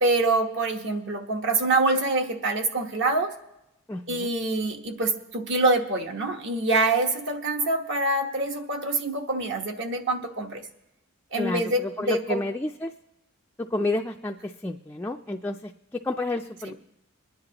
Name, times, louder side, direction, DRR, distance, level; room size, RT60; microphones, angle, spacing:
voice 1, 0.0-3.3 4.1-10.6 11.3-12.4 16.6-16.7, right 2 dB, 55° right, 4 dB, 1.2 m, -25 dB
voice 2, 3.9-4.3 11.4-12.9 13.6-16.7, left 2 dB, 10° left, 3 dB, 0.3 m, -30 dB
23.0 x 10.5 x 2.9 m, 0.90 s
head